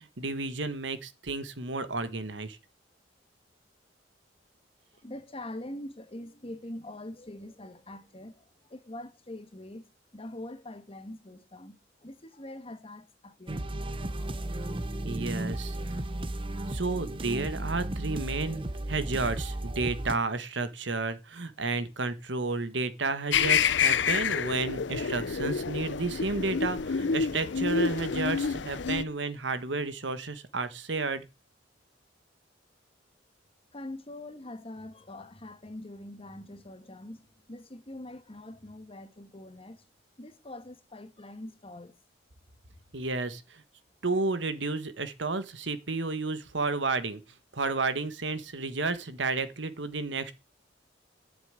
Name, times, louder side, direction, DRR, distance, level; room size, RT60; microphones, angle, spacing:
voice 1, 0.0-2.6 15.0-15.8 16.7-31.3 42.9-43.6 44.0-47.2 47.5-50.3, right 3 dB, 75° right, 1.4 m, -32 dB
voice 2, 5.0-9.9 10.1-13.7 33.7-37.2 37.5-39.8 40.2-41.9, left 1 dB, 30° left, 1.4 m, -43 dB
sound 1, 13.5-20.2, right 1 dB, 30° right, 0.9 m, -34 dB
sound 2, 23.3-29.0, left 6 dB, 70° left, 0.6 m, -28 dB
11.0 x 7.1 x 8.8 m
head